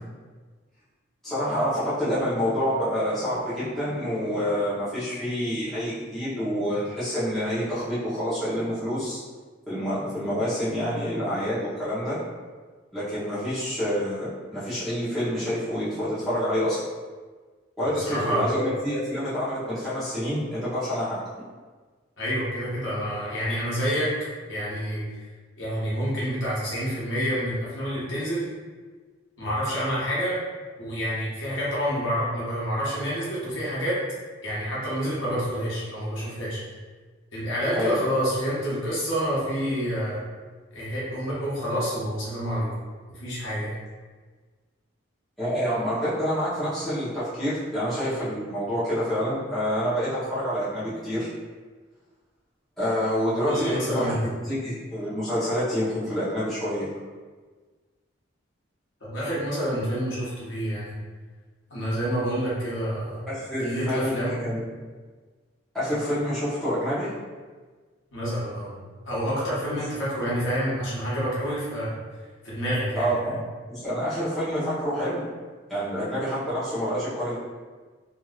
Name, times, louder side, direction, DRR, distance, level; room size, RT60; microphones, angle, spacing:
voice 1, 1.2-9.2 9.7-12.2 12.9-16.8 17.8-21.2 37.7-37.9 45.4-51.3 52.8-56.9 63.3-64.6 65.7-67.2 73.0-73.4 73.7-75.3 75.7-77.4, equal, ahead, -14 dB, 1.0 m, -27 dB
voice 2, 17.8-18.5 22.2-24.1 24.5-25.0 25.6-28.4 29.4-30.4 30.8-34.0 34.4-36.6 37.3-40.2 40.7-42.7 43.1-43.7 53.5-54.2 59.0-60.9 61.7-63.2 63.6-64.4 68.1-68.7 69.1-71.9 72.4-73.4, equal, 75° left, -8 dB, 1.1 m, -28 dB
3.0 x 2.8 x 2.4 m, 1.4 s
head